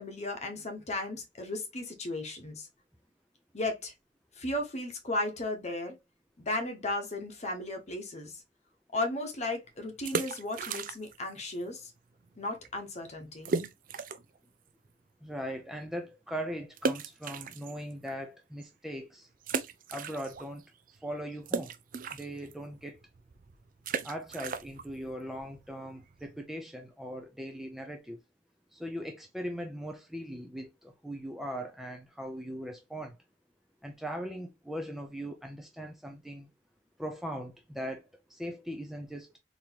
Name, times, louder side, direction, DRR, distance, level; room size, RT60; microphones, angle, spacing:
voice 1, 0.0-2.7 3.5-3.9 4.3-6.0 6.4-8.3 8.9-11.9 12.4-13.5, left 2 dB, 40° left, 1.0 m, -35 dB
sound 1, 9.9-11.3 11.5-11.6 12.2-12.4 12.6-12.7 13.4-14.4 14.8-14.9 16.8-18.1 18.6-18.7 19.4-20.6 20.9-26.4, right 4 dB, 50° right, 0.4 m, -36 dB
voice 2, 15.2-19.3 19.9-20.6 21.0-21.7 22.1-23.0 24.0-28.2 28.7-33.2 33.8-36.5 37.0-38.0 38.3-39.3, equal, ahead, 0.5 m, -39 dB
4.0 x 3.0 x 2.8 m
head